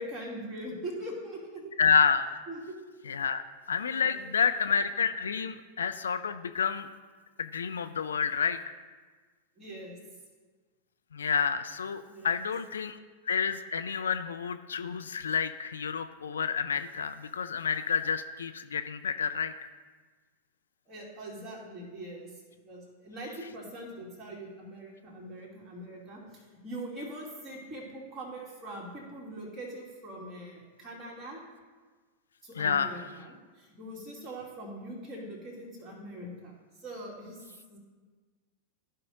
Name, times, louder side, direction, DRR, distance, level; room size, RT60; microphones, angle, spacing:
voice 1, 0.0-1.7 2.5-2.8 3.8-4.3 9.6-10.0 12.1-12.4 20.9-31.4 32.4-37.8, right 1 dB, 20° right, -5 dB, 2.7 m, -42 dB
voice 2, 1.8-2.4 3.1-3.4 3.7-6.9 7.4-8.8 11.1-13.0 13.3-19.5 32.6-32.9, left 6 dB, 70° left, 10 dB, 0.3 m, -29 dB
14.5 x 5.5 x 2.6 m, 1.4 s
figure-of-eight pair, 90°, 0 cm